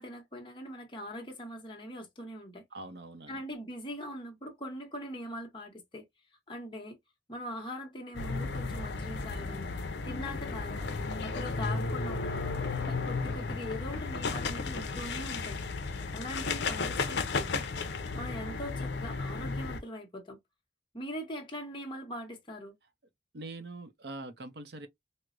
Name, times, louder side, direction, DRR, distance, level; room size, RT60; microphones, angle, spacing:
voice 1, 0.0-2.6 3.3-6.1 6.5-7.0 7.3-9.7 10.1-12.4 12.9-15.6 16.1-17.7 18.1-20.4 20.9-22.7, equal, 25° left, 1.0 m, -41 dB
voice 2, 2.7-3.4 23.3-24.9, right 2 dB, 60° right, 0.7 m, -43 dB
sound 1, 8.1-19.8, left 4 dB, 75° left, 0.6 m, -34 dB
4.6 x 2.1 x 2.4 m
head